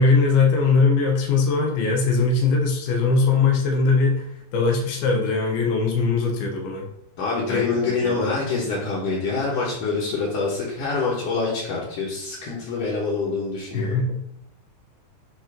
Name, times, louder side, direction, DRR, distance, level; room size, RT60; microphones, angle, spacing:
voice 1, 0.0-4.2 4.5-6.9 7.5-8.2 13.7-14.2, left 4 dB, 90° left, 0 dB, 3.0 m, -20 dB
voice 2, 7.2-14.0, left 4 dB, 65° left, -7 dB, 2.6 m, -25 dB
8.3 x 3.0 x 5.0 m, 0.73 s
omnidirectional pair, 4.3 m